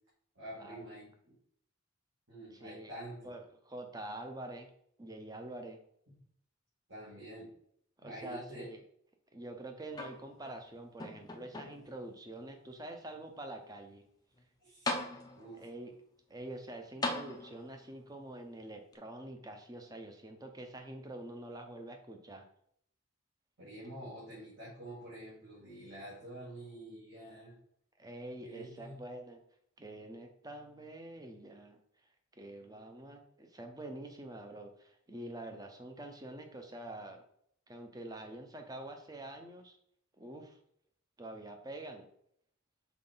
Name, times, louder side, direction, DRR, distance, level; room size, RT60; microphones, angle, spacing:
voice 1, 0.3-1.3 2.3-3.3 6.1-6.2 6.9-7.5 8.0-8.7 14.6-15.0 15.4-15.7 23.6-27.6 28.4-29.0, right 1 dB, 65° right, -10 dB, 2.6 m, -47 dB
voice 2, 2.5-2.9 3.2-4.7 5.0-5.8 8.0-8.8 9.3-14.1 15.6-15.9 16.3-22.4 28.0-29.4 29.8-31.8 32.3-37.2 37.7-39.8 40.2-40.6 41.2-42.1, right 1 dB, 15° right, 5 dB, 0.7 m, -46 dB
sound 1, 9.9-10.6 11.0-12.0 12.7-12.8 14.4-14.5 14.9-15.6 17.0-17.9 18.9-19.0, left 2 dB, 20° left, 0.5 m, -39 dB
5.8 x 4.3 x 3.8 m, 0.70 s
head